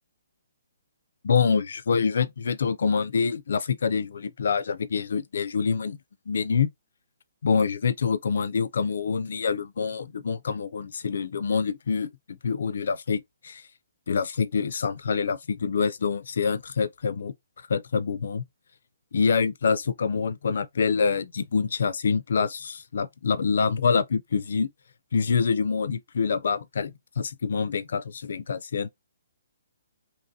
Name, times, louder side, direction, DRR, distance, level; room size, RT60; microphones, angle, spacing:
voice 1, 1.2-6.0 6.3-6.7 7.4-12.1 12.4-13.6 14.1-17.3 17.7-18.4 19.1-24.7 25.1-28.9, left 5 dB, 60° left, 0.4 m, -26 dB
2.9 x 2.6 x 4.0 m
hypercardioid pair, 175°, 0 cm